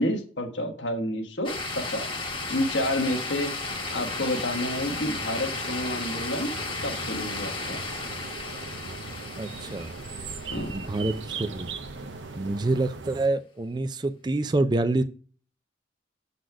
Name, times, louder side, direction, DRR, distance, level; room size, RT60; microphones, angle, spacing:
voice 1, 0.0-2.2 2.5-6.5 6.8-7.8 10.5-10.7, left 1 dB, 75° left, 1.3 m, -29 dB
sound 1, 1.4-11.7, left 3 dB, 25° left, 1.1 m, -35 dB
sound 2, 1.5-13.3, right 4 dB, 75° right, 0.7 m, -40 dB
voice 2, 9.4-9.9 10.7-11.7 12.4-15.0, right 2 dB, 25° right, 0.4 m, -27 dB
7.9 x 4.1 x 4.6 m
head